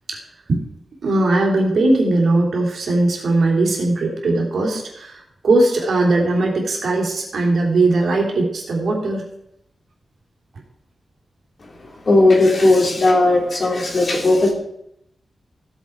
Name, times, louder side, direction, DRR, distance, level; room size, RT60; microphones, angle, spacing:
voice 1, 1.0-9.2, right 2 dB, 70° right, 0 dB, 3.4 m, -19 dB
voice 2, 12.0-14.5, left 2 dB, 40° left, 0 dB, 2.9 m, -16 dB
16.0 x 8.2 x 4.7 m, 0.78 s
wide cardioid pair, 180°, 0 cm